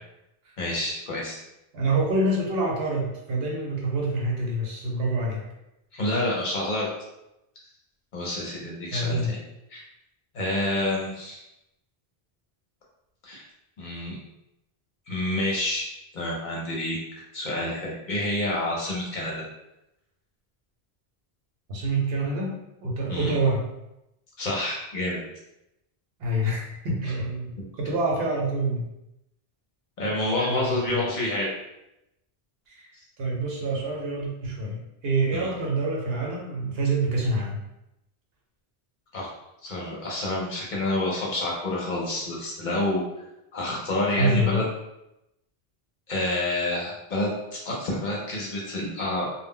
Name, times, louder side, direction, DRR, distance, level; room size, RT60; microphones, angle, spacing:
voice 1, 0.6-1.4 5.9-6.9 8.1-9.4 9.7-9.8 10.3-11.4 13.2-13.4 13.8-14.2 15.1-15.9 16.1-17.0 17.3-19.4 23.1-23.4 24.4-25.2 30.0-31.5 35.3-35.5 39.1-39.3 39.6-43.0 43.5-44.6 46.1-49.3, left 1 dB, 55° left, -4 dB, 0.7 m, -28 dB
voice 2, 1.7-5.5 8.9-9.3 21.7-22.5 22.8-23.6 26.2-28.8 30.4-31.0 32.7-37.6 44.2-44.6, right 2 dB, 70° right, -2 dB, 0.9 m, -27 dB
2.1 x 2.0 x 3.6 m, 0.89 s
omnidirectional pair, 1.1 m